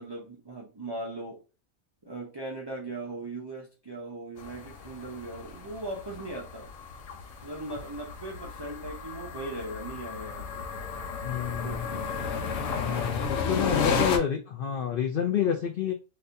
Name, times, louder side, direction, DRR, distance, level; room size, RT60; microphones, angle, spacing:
voice 1, 0.0-1.4 2.0-6.7 7.4-10.6 11.6-12.1 13.1-13.2 13.5-14.1, right 2 dB, 35° right, -3 dB, 0.4 m, -39 dB
sound 1, 4.4-14.2, left 5 dB, 70° left, 1.0 m, -33 dB
voice 2, 11.2-11.9 12.7-15.9, left 8 dB, 90° left, 3 dB, 0.4 m, -29 dB
4.0 x 2.6 x 2.6 m, 0.31 s
omnidirectional pair, 1.5 m